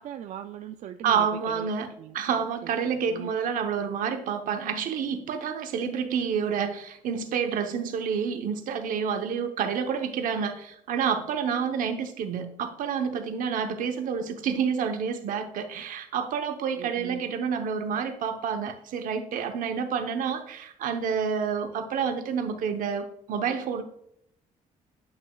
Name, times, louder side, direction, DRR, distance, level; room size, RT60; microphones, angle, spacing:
voice 1, 0.0-1.7 2.0-2.2 3.1-3.4 13.7-13.9 16.8-17.3, right 10 dB, 60° right, 7 dB, 0.4 m, -40 dB
voice 2, 1.0-23.8, right 7 dB, 75° right, 6 dB, 0.9 m, -29 dB
9.3 x 5.9 x 2.3 m, 0.72 s
cardioid pair, 135°, 14 cm